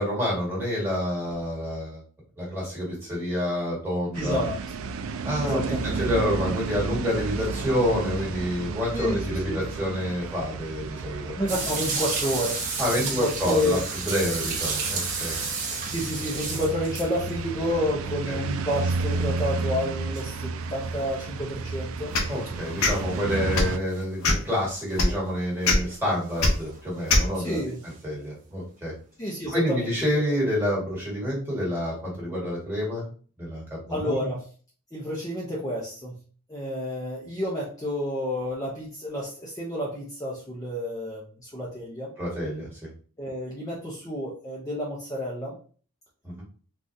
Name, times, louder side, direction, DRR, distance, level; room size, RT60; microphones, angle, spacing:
voice 1, 0.0-2.0 2.4-4.5 5.2-11.3 12.8-13.8 14.1-15.4 18.3-18.4 22.3-27.6 27.8-28.9 29.5-33.1 33.4-34.3 42.2-42.9 46.2-46.4, equal, 10° right, -5 dB, 1.5 m, -28 dB
voice 2, 4.1-4.6 5.4-6.0 8.9-9.6 11.4-13.8 15.9-22.1 27.3-27.8 29.2-30.3 33.9-34.4 34.9-36.2 36.5-42.1 43.2-45.6, equal, 15° left, -4 dB, 0.5 m, -30 dB
sound 1, 4.1-23.8, right 4 dB, 70° right, 0.3 m, -33 dB
sound 2, 11.5-17.4 18.9-19.6 20.1-20.2 21.5-21.6 22.9-23.5 23.9-24.0 24.9-25.0 26.3-26.5 27.5-27.6 30.0-30.1, right 4 dB, 35° right, 0.9 m, -32 dB
sound 3, 22.1-22.3 22.8-23.0 23.5-23.8 24.2-24.5 25.0-25.1 25.6-25.8 26.4-26.5 27.1-27.3, left 2 dB, 85° left, 0.7 m, -20 dB
3.8 x 2.3 x 2.6 m, 0.41 s
head